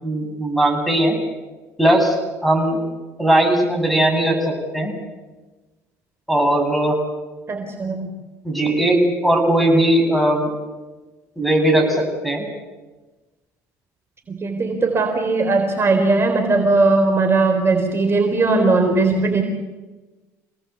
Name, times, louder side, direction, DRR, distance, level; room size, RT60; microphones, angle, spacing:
voice 1, 0.0-1.2 1.8-2.2 2.4-2.8 3.2-5.0 6.3-7.0 8.4-10.5 11.4-12.4, right 1 dB, ahead, 4 dB, 7.7 m, -18 dB
voice 2, 7.5-8.1 14.3-19.4, right 3 dB, 30° right, 3 dB, 3.9 m, -18 dB
27.5 x 18.5 x 8.4 m, 1.2 s
supercardioid pair, 75°, 8 cm